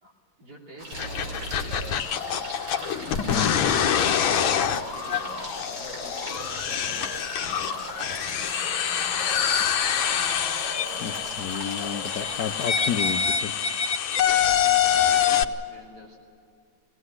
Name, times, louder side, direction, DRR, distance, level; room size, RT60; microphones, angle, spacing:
voice 1, 0.0-2.3 3.4-8.0 14.4-16.2, right 1 dB, 55° right, -2 dB, 3.4 m, -47 dB
sound 1, 0.8-13.1, right 1 dB, 75° right, 7.2 m, -39 dB
sound 2, 0.9-15.4, left 8 dB, 85° left, 1.7 m, -25 dB
voice 2, 3.3-3.6 11.0-13.5, left 8 dB, 65° left, 8 dB, 1.1 m, -31 dB
22.5 x 18.0 x 9.9 m, 2.5 s
omnidirectional pair, 2.1 m